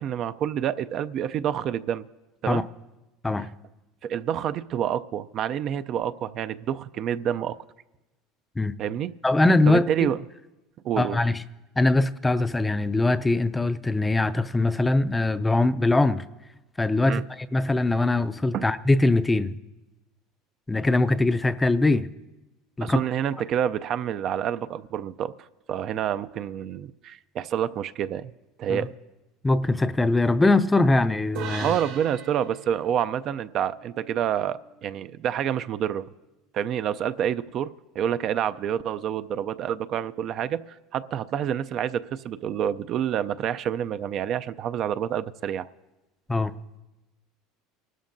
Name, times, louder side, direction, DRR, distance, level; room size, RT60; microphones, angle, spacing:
voice 1, 0.0-2.0 2.4-2.7 4.0-7.6 8.8-9.1 9.7-10.2 10.8-11.2 17.1-17.2 18.5-18.7 22.8-28.3 28.6-28.9 31.6-36.1 36.5-37.7 38.0-40.6 40.9-45.7, right 9 dB, 50° right, 0.4 m, -28 dB
voice 2, 9.2-9.8 11.0-11.4 11.8-16.2 16.8-19.6 20.7-22.1 22.8-23.0 28.7-28.9 29.4-31.7 46.3-46.5, left 2 dB, 10° left, 0.4 m, -22 dB
sound 1, 31.3-34.8, right 8 dB, 85° right, 2.5 m, -40 dB
29.5 x 12.5 x 2.6 m
supercardioid pair, 110°, 0 cm